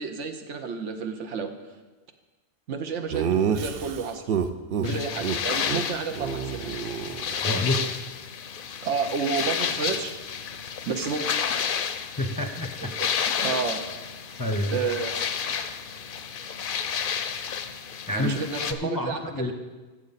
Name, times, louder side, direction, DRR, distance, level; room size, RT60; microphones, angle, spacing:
voice 1, 0.0-1.5 2.7-4.2 4.8-6.7 8.8-10.1 10.8-11.4 12.8-13.1 13.4-13.8 14.7-15.1 18.1-19.5, right 5 dB, 80° right, 6 dB, 1.2 m, -30 dB
Laughter, 3.1-4.9 5.2-5.4 5.7-5.8 6.1-7.7, right 7 dB, 60° right, 0.8 m, -28 dB
sound 1, 4.8-18.7, left 7 dB, 55° left, 0.7 m, -31 dB
voice 2, 7.4-7.9 12.0-12.9 14.4-14.7 18.1-18.4 18.8-19.5, left 1 dB, 20° left, 4 dB, 0.6 m, -28 dB
14.0 x 7.4 x 4.1 m, 1.2 s
omnidirectional pair, 1.2 m